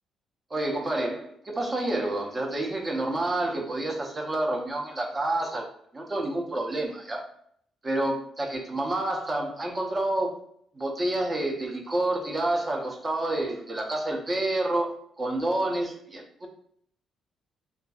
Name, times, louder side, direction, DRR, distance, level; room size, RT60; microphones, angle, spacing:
voice 1, 0.5-5.7 5.9-7.2 7.8-10.4 10.7-16.5, right 1 dB, 30° right, 2 dB, 0.6 m, -29 dB
2.5 x 2.3 x 2.4 m, 0.65 s
cardioid pair, 90°, 0 cm